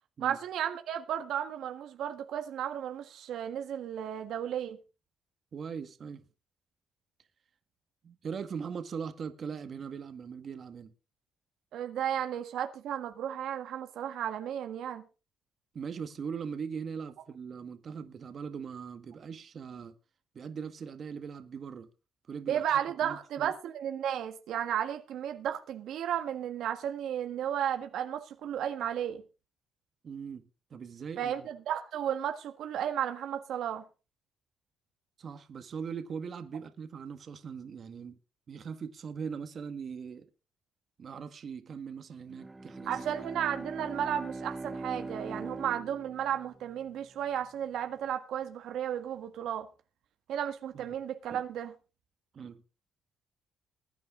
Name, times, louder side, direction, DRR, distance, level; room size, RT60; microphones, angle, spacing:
voice 1, 0.2-4.8 11.7-15.0 22.5-29.2 31.2-33.8 42.9-49.7 50.3-51.7, right 9 dB, 80° right, 1.6 m, -34 dB
voice 2, 5.5-6.2 8.0-10.9 15.7-19.9 20.3-21.9 22.3-22.6 23.0-23.5 30.0-31.5 35.2-38.2 38.5-40.3 41.0-43.0 50.7-51.0 51.3-51.4 52.3-52.6, right 6 dB, 50° right, 1.9 m, -40 dB
Bowed string instrument, 42.3-47.1, right 3 dB, 20° right, 0.8 m, -41 dB
20.5 x 9.4 x 3.8 m
cardioid pair, 90°, 0 cm